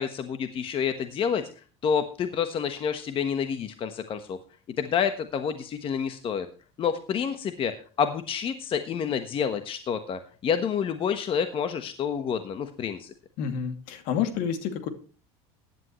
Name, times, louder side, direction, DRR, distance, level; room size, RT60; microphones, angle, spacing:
voice 1, 0.0-1.4 1.8-4.4 4.8-6.5 6.8-13.1, left 7 dB, 40° left, 9 dB, 1.3 m, -28 dB
voice 2, 13.4-14.9, left 8 dB, 65° left, 8 dB, 2.6 m, -29 dB
15.5 x 10.5 x 3.2 m, 0.37 s
supercardioid pair, 125°, 15 cm